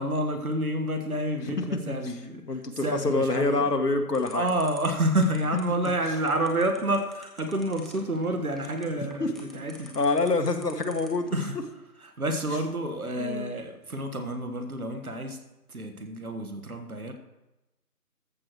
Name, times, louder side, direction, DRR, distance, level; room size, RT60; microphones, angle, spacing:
voice 1, 0.0-2.6 2.8-3.6 4.3-9.9 11.3-11.6 12.0-15.4 15.7-17.1, right 1 dB, 60° right, 6 dB, 1.6 m, -29 dB
voice 2, 1.4-1.8 2.5-4.5 9.2-9.3 9.9-11.4 13.2-13.5, left 3 dB, 80° left, 7 dB, 1.4 m, -26 dB
sound 1, 4.1-11.3, equal, ahead, 0.7 m, -48 dB
14.0 x 6.3 x 4.6 m, 0.98 s
figure-of-eight pair, 170°, 48 cm